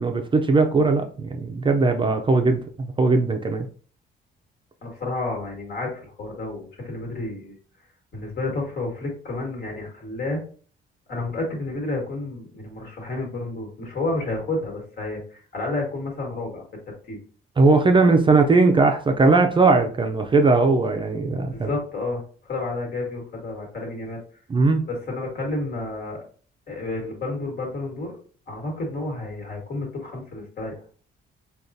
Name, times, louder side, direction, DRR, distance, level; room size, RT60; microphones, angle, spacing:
voice 1, 0.0-3.7 17.6-21.7 24.5-24.8, right 3 dB, 25° right, 5 dB, 0.4 m, -19 dB
voice 2, 4.8-7.5 8.1-10.4 11.1-17.2 21.5-24.2 24.8-26.2 26.7-28.1 28.5-30.7, left 2 dB, 55° left, 0 dB, 1.5 m, -30 dB
3.6 x 2.3 x 2.6 m, 0.43 s
cardioid pair, 90°, 20 cm